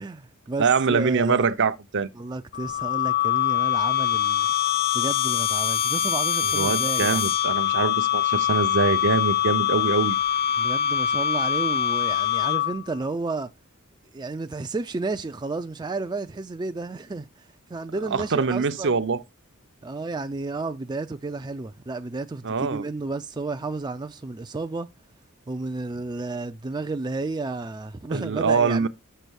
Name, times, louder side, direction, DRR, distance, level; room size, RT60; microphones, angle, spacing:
voice 1, 0.0-1.5 2.1-4.5 4.9-7.2 10.6-13.5 14.1-18.9 19.8-24.9 25.5-28.9, right 3 dB, 20° right, 0.4 m, -32 dB
voice 2, 0.6-2.1 6.5-10.2 18.1-19.2 22.4-22.8 28.1-28.9, right 5 dB, 55° right, 0.7 m, -23 dB
sound 1, 2.5-12.9, left 10 dB, 45° left, 0.5 m, -24 dB
6.7 x 6.5 x 6.3 m
head